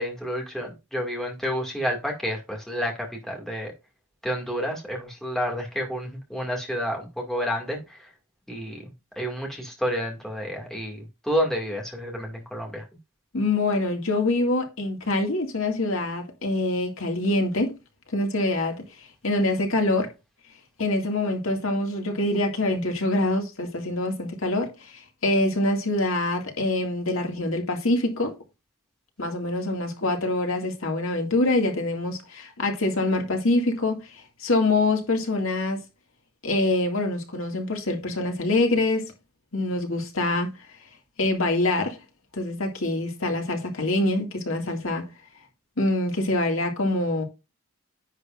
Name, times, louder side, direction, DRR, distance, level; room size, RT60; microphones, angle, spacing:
voice 1, 0.0-3.7 4.2-8.1 8.5-8.9 9.2-12.8, equal, ahead, 2.1 m, -30 dB
voice 2, 13.3-17.8 18.1-18.8 19.2-20.1 20.8-28.3 29.2-34.1 34.4-35.8 36.4-39.1 39.5-40.5 41.2-42.0 42.3-45.0 45.8-47.2, left 2 dB, 70° left, 2.1 m, -25 dB
10.5 x 8.0 x 2.5 m
head